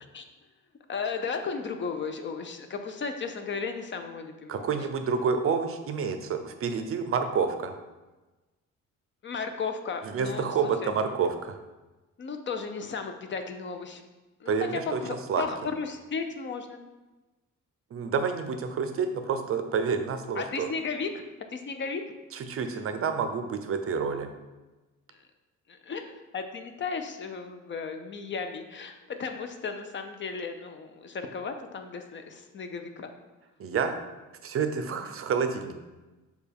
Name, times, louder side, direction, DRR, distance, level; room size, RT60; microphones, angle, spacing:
voice 1, 0.9-4.7 9.2-10.5 10.8-10.9 12.2-14.0 14.4-16.8 20.4-21.2 21.5-22.0 25.1-25.2 25.7-33.1, left 5 dB, 40° left, 6 dB, 0.5 m, -35 dB
voice 2, 4.5-7.7 10.0-11.6 14.5-15.0 15.3-15.4 17.9-20.7 22.3-24.3 33.6-34.0 34.4-35.7, right 5 dB, 50° right, 7 dB, 0.5 m, -28 dB
6.6 x 2.3 x 3.4 m, 1.1 s
cardioid pair, 90°, 30 cm